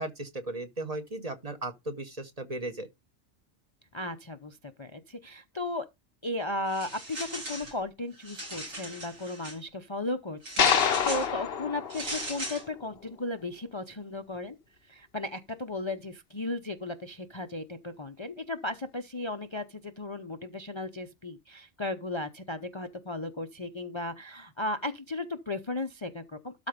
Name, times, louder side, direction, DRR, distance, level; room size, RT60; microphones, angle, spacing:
voice 1, 0.0-2.9, right 2 dB, 30° right, 1.1 m, -36 dB
voice 2, 3.9-5.9 6.2-14.6 14.8-26.5, left 2 dB, 30° left, 0.6 m, -35 dB
sound 1, 6.7-7.8 8.1-9.6 10.4-11.3 11.9-12.6, right 1 dB, 80° right, 2.9 m, -38 dB
sound 2, 10.6-12.9, left 7 dB, 55° left, 0.9 m, -27 dB
12.5 x 4.3 x 5.2 m
omnidirectional pair, 1.3 m